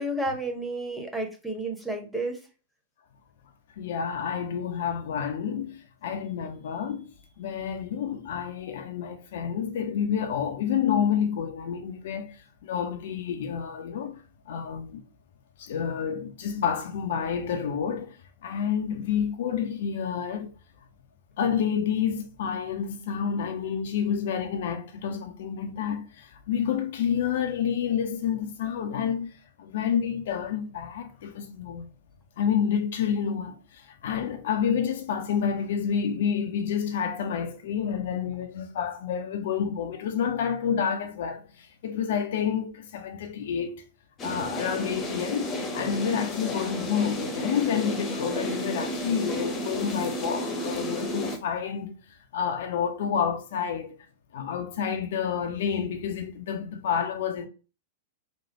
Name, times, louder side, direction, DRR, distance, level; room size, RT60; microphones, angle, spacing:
voice 1, 0.0-2.4, right 1 dB, ahead, 0.8 m, -31 dB
voice 2, 3.8-7.1 7.4-15.0 15.6-20.5 21.4-29.3 29.6-31.9 32.4-43.8 44.2-51.9 52.3-54.0 54.3-57.5, left 8 dB, 60° left, 0.4 m, -29 dB
sound 1, 44.2-51.4, equal, 25° left, 0.7 m, -32 dB
3.1 x 2.0 x 2.8 m
figure-of-eight pair, 95°, 0 cm